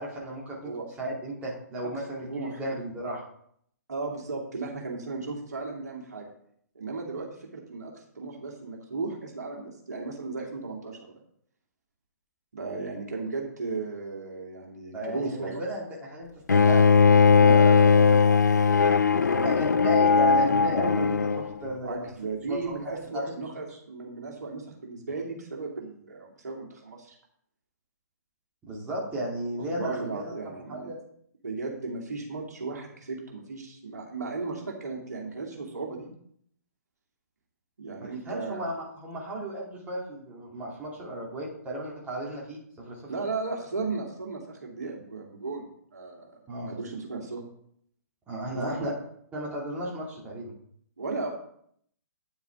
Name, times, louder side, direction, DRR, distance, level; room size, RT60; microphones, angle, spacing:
voice 1, 0.0-0.7 1.0-3.2 14.9-16.8 17.3-17.6 19.0-22.1 22.5-23.2 28.6-30.3 30.7-31.0 38.0-43.1 46.5-46.7 48.3-48.9 49.3-50.5, equal, 15° right, -4 dB, 2.6 m, -34 dB
voice 2, 2.2-2.6 3.9-6.3 6.7-11.2 12.5-15.6 17.4-19.8 20.1-20.3 21.8-27.2 29.6-30.9 31.4-36.1 37.8-38.6 43.1-46.3 46.7-47.4 48.5-48.9 51.0-51.3, right 3 dB, 70° right, -1 dB, 2.5 m, -35 dB
Bowed string instrument, 16.5-21.5, left 5 dB, 80° left, 0.4 m, -19 dB
9.7 x 7.2 x 3.7 m, 0.67 s
figure-of-eight pair, 125°, 9 cm